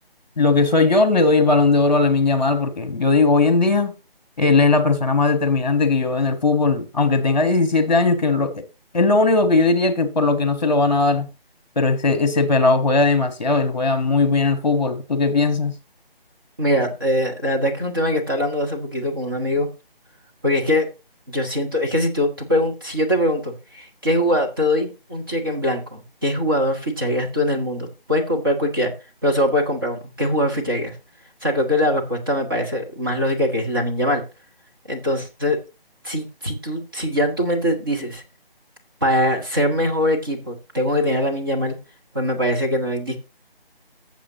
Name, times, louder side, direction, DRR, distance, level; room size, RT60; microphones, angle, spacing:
voice 1, 0.4-3.9 4.4-8.6 8.9-11.3 11.7-15.7, left 3 dB, 45° left, 1.4 m, -18 dB
voice 2, 16.6-19.7 20.4-20.9 21.3-28.9 29.2-31.0 31.4-34.2 34.9-35.6 36.0-38.2 39.0-41.8 42.1-43.2, equal, 20° right, 1.1 m, -22 dB
15.0 x 7.2 x 2.9 m
figure-of-eight pair, 170°, 30 cm